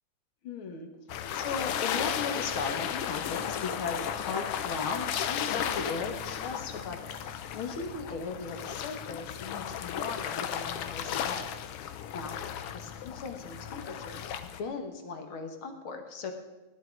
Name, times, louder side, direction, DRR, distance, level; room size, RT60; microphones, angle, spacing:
voice 1, 0.4-0.9 1.3-11.5 12.1-12.4 12.7-16.3, left 4 dB, 50° left, 5 dB, 1.9 m, -37 dB
sound 1, 1.1-14.6, left 9 dB, 75° left, 1.3 m, -35 dB
16.5 x 11.0 x 4.6 m, 1.1 s
omnidirectional pair, 3.5 m